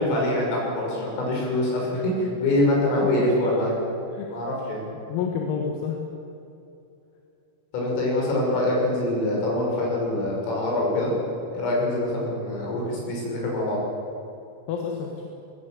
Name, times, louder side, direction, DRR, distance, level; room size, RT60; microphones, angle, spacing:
voice 1, 0.0-3.7 4.3-4.8 7.7-11.1 11.5-13.8, left 1 dB, 75° left, -2 dB, 9.2 m, -24 dB
voice 2, 5.1-6.0 14.7-15.3, left 6 dB, 90° left, 1 dB, 4.6 m, -29 dB
24.5 x 20.0 x 7.9 m, 2.7 s
omnidirectional pair, 6.0 m